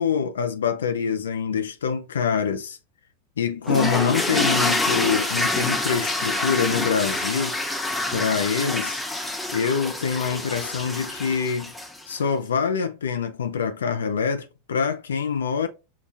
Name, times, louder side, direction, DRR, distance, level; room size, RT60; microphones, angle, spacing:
voice 1, 0.0-2.8 3.4-7.6 8.1-9.0 9.5-11.7 12.1-15.7, left 6 dB, 90° left, 0.4 m, -25 dB
sound 1, 3.7-12.1, left 1 dB, 5° left, 0.6 m, -26 dB
5.6 x 2.3 x 2.5 m
hypercardioid pair, 105°, 0 cm